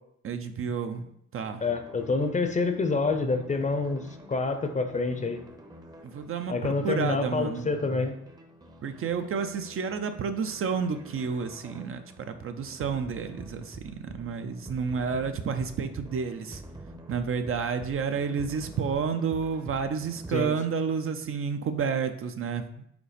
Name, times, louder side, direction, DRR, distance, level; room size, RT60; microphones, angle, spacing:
voice 1, 0.2-1.1 1.3-1.6 6.0-7.7 8.8-16.6 17.1-22.6, right 6 dB, 50° right, 8 dB, 0.6 m, -30 dB
voice 2, 1.6-5.4 6.5-8.1 20.3-20.5, left 3 dB, 25° left, 7 dB, 0.7 m, -27 dB
sound 1, 1.6-20.4, right 1 dB, 15° right, 0.7 m, -48 dB
5.1 x 4.0 x 5.0 m, 0.74 s
cardioid pair, 120°, 29 cm